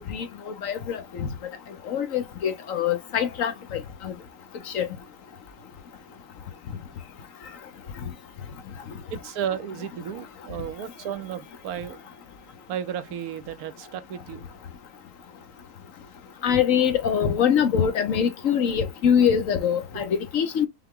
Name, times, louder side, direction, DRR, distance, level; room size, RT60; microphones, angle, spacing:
voice 1, 0.6-1.3 1.9-3.5 4.0-4.1 4.7-4.9 16.4-20.7, left 8 dB, 65° left, 1.1 m, -23 dB
voice 2, 9.1-12.0 12.7-14.4 19.9-20.0, right 9 dB, 75° right, 1.2 m, -33 dB
5.8 x 2.2 x 3.6 m
omnidirectional pair, 1.6 m